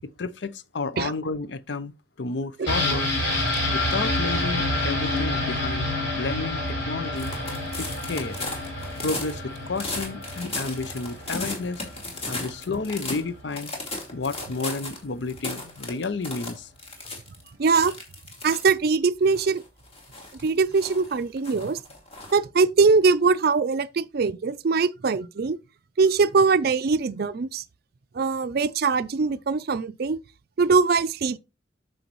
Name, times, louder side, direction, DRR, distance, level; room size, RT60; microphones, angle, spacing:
voice 1, 0.0-3.1 3.7-7.3 7.8-8.4 9.0-11.8 12.3-13.8 14.1-16.7, left 3 dB, 65° left, 0.6 m, -31 dB
sound 1, 2.7-12.3 12.6-12.7, left 1 dB, 85° left, 5.4 m, -28 dB
sound 2, 7.2-13.2 13.5-15.0 15.3-17.5 17.7-18.7 19.3-22.4, left 2 dB, 30° left, 2.5 m, -35 dB
voice 2, 17.6-17.9 18.4-19.6 20.4-21.8 22.3-25.6 26.0-27.6 28.1-30.2 30.6-31.4, right 4 dB, 50° right, 0.4 m, -22 dB
9.1 x 6.3 x 3.1 m
head